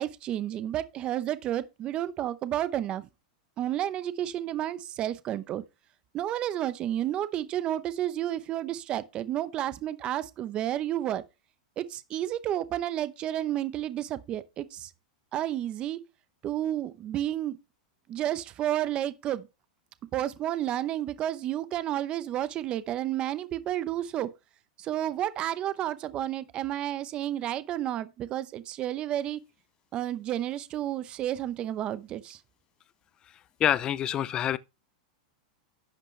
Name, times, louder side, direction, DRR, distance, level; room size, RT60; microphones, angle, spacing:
voice 1, 0.0-3.1 3.6-5.6 6.1-11.2 11.8-14.9 15.3-16.0 16.4-17.6 18.1-19.5 20.1-24.3 24.8-29.4 29.9-32.4, right 12 dB, 25° right, 0.7 m, -31 dB
voice 2, 33.6-34.6, left 11 dB, 20° left, 0.4 m, -26 dB
11.5 x 8.0 x 3.2 m
supercardioid pair, 165°, 4 cm